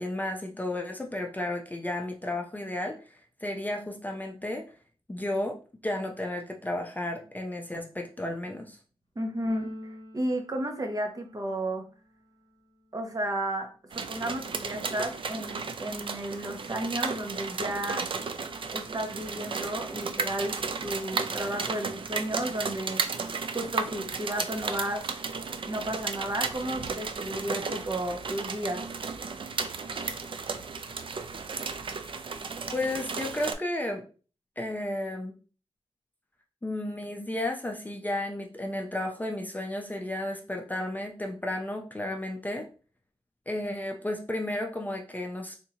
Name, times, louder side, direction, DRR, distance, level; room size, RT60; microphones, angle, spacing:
voice 1, 0.0-4.7 5.1-5.6 5.8-8.8 32.7-34.0 34.6-35.4 36.6-42.7 43.5-45.6, left 1 dB, 15° left, 2 dB, 0.6 m, -33 dB
voice 2, 9.2-9.7 10.1-11.8 12.9-18.0 18.7-23.0 23.5-25.0 25.7-28.9, right 1 dB, 35° right, 3 dB, 0.9 m, -33 dB
Keyboard (musical), 9.4-11.6, left 1 dB, 50° left, 1.0 m, -44 dB
sound 1, 13.9-33.5, right 5 dB, 50° right, 0.4 m, -34 dB
3.5 x 2.8 x 2.8 m, 0.36 s
cardioid pair, 65°, 11 cm